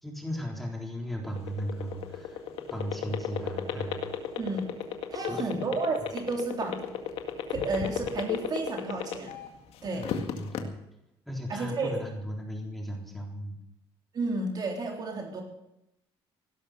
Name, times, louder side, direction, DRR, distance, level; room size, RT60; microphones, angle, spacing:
voice 1, 0.0-2.4 2.7-4.1 5.1-5.8 9.9-10.7 11.3-13.6, equal, ahead, 0 dB, 3.8 m, -36 dB
sound 1, 1.2-9.5 9.9-10.6, left 10 dB, 75° left, 2.0 m, -32 dB
voice 2, 4.4-4.8 5.1-6.9 7.5-9.4 9.8-10.1 11.5-11.9 14.1-15.4, right 3 dB, 45° right, 1 dB, 3.5 m, -32 dB
17.0 x 12.0 x 6.9 m, 0.86 s
cardioid pair, 115°, 10 cm